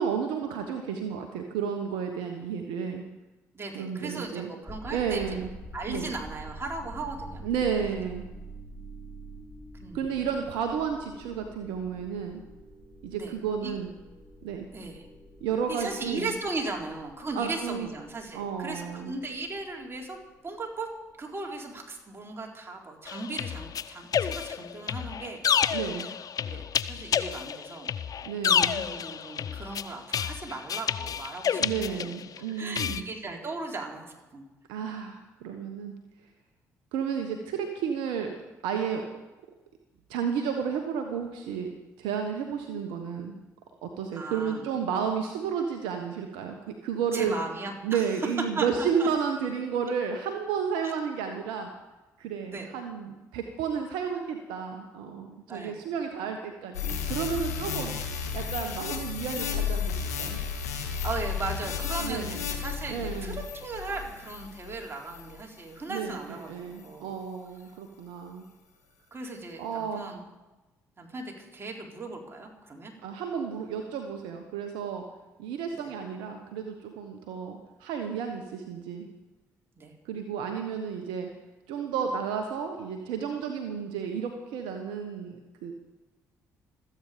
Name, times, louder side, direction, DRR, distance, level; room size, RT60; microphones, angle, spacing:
voice 1, 0.0-3.0 3.7-4.5 4.9-5.5 5.9-6.1 7.4-8.2 9.9-12.4 13.0-13.9 14.4-14.7 15.4-16.3 17.3-17.9 18.3-19.1 25.7-26.1 28.2-28.8 31.6-33.0 34.7-35.9 36.9-38.4 38.6-39.0 40.1-41.7 42.0-43.4 43.8-47.3 47.8-51.7 52.2-58.0 58.3-60.4 62.0-62.4 62.9-63.4 65.9-68.4 69.6-70.2 73.0-75.0 75.4-79.1 80.0-81.3 81.7-85.7, right 7 dB, 70° right, 5 dB, 1.2 m, -32 dB
voice 2, 3.5-5.2 5.7-7.4 9.8-10.2 13.1-13.3 13.6-13.7 14.7-15.0 15.7-20.2 20.4-20.9 21.2-26.1 26.5-27.9 28.8-32.1 32.4-34.5 44.1-44.6 47.1-48.1 48.5-49.1 50.8-50.9 52.5-52.7 55.5-55.7 57.6-57.8 61.0-67.2 69.1-70.2 71.0-72.9 75.8-75.9 79.8-79.9, right 3 dB, 30° right, 0 dB, 4.0 m, -37 dB
sound 1, 4.6-21.6, right 1 dB, ahead, 5.0 m, -47 dB
sound 2, 23.1-32.4 32.7-33.0, left 8 dB, 45° left, 0.7 m, -29 dB
sound 3, 56.7-65.4 65.9-66.1, left 7 dB, 85° left, 1.7 m, -33 dB
26.0 x 8.9 x 5.1 m, 1.1 s
figure-of-eight pair, 45°, 8 cm